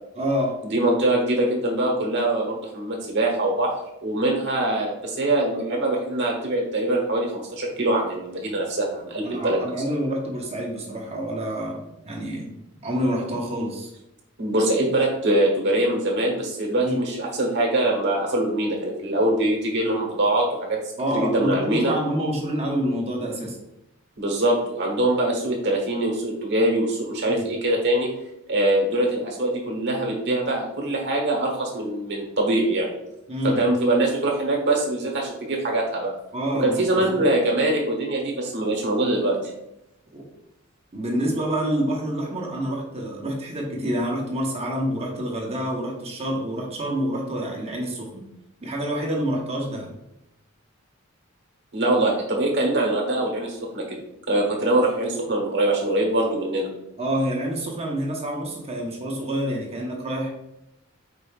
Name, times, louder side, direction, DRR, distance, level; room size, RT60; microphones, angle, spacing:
voice 1, 0.2-0.6 9.2-12.5 12.8-13.9 16.8-17.0 21.0-23.6 27.3-27.5 33.3-33.6 36.3-37.0 40.1-40.2 40.9-48.2 48.6-49.9 57.0-60.3, equal, 30° right, -1 dB, 0.9 m, -27 dB
voice 2, 0.7-3.8 4.0-9.7 14.4-20.8 21.1-21.9 24.2-28.1 28.5-32.9 33.4-36.1 36.6-39.4 51.7-54.0 54.3-56.7, right 1 dB, 55° right, 0 dB, 1.1 m, -23 dB
5.1 x 4.4 x 2.4 m, 0.85 s
head